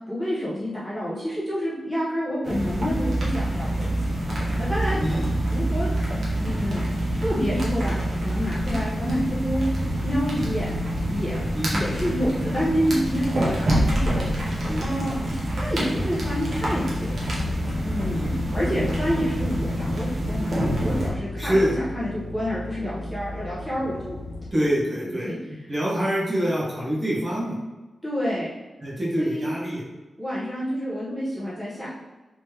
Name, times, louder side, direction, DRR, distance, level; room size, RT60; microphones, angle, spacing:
voice 1, 0.1-4.1 4.6-5.0 5.5-5.9 6.4-6.9 7.2-7.9 8.2-9.7 10.0-10.8 11.1-11.4 11.7-14.3 14.8-15.2 15.6-17.1 17.8-20.5 20.8-24.2 25.0-25.4 28.0-28.5 29.2-29.5 30.2-31.9, equal, 5° left, -9 dB, 1.0 m, -28 dB
sound 1, 2.4-21.1, right 1 dB, 50° right, 0.9 m, -26 dB
voice 2, 5.0-5.4 10.3-10.5 11.5-11.8 14.7-15.3 18.1-18.3 21.4-21.8 24.5-25.3 25.7-27.6 28.8-29.8, equal, 25° right, -6 dB, 1.1 m, -26 dB
sound 2, 16.2-24.5, left 2 dB, 55° left, 0.5 m, -35 dB
3.3 x 3.0 x 3.2 m, 1.1 s
wide cardioid pair, 150°, 0 cm